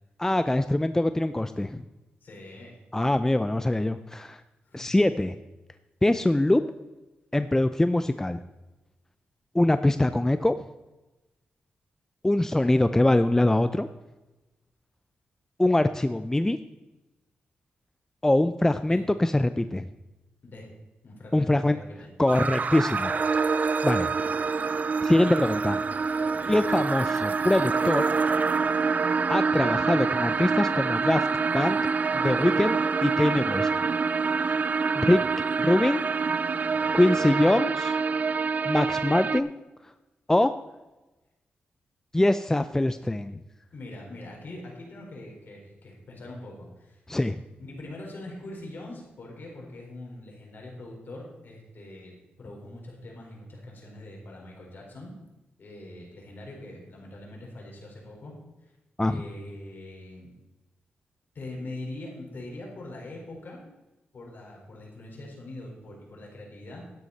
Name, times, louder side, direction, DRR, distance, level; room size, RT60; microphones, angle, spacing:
voice 1, 0.2-1.8 2.9-4.4 4.7-5.3 6.0-6.6 7.3-8.4 9.5-10.6 12.2-13.9 15.6-16.6 18.2-19.9 21.3-21.8 22.2-23.1 23.8-24.1 25.0-25.8 26.5-28.0 29.3-31.3 31.5-31.8 32.1-33.7 34.5-34.6 35.0-35.2 35.6-36.0 36.9-38.0 38.7-39.5 40.3-40.5 42.1-43.3 47.1-47.4 59.0-59.2, left 1 dB, 10° left, 11 dB, 0.5 m, -23 dB
voice 2, 2.2-2.7 4.6-4.9 18.9-19.0 20.4-20.7 21.0-22.1 26.2-26.8 36.7-37.3 43.7-47.0 47.6-55.1 55.6-58.3 59.0-60.3 61.3-63.6 64.1-66.8, left 1 dB, 60° left, -1 dB, 4.6 m, -43 dB
sound 1, 22.3-39.4, right 5 dB, 45° right, 0.4 m, -26 dB
12.5 x 9.9 x 4.2 m, 1.1 s
cardioid pair, 75°, 4 cm